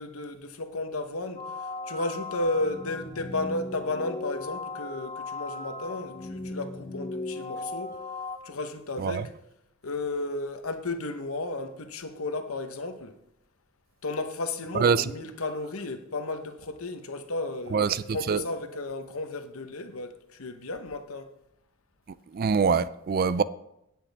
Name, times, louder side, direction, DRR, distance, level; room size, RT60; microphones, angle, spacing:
voice 1, 0.0-8.0 8.4-9.3 9.8-13.2 14.0-21.3, left 2 dB, 70° left, 1.0 m, -33 dB
sound 1, 1.4-8.4, left 3 dB, 30° left, 0.8 m, -37 dB
voice 2, 22.3-23.4, right 5 dB, 40° right, 0.3 m, -23 dB
18.0 x 6.1 x 3.5 m
head